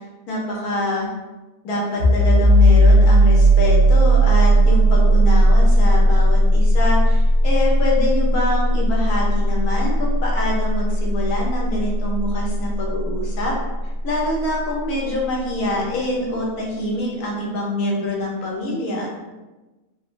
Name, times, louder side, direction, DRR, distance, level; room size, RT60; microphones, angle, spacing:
voice 1, 0.3-1.1 1.6-13.5 14.0-19.1, left 1 dB, 80° left, -2 dB, 1.4 m, -25 dB
sound 1, 2.0-13.4, right 1 dB, 60° right, 1.3 m, -16 dB
4.1 x 2.0 x 2.5 m, 1.1 s
omnidirectional pair, 1.6 m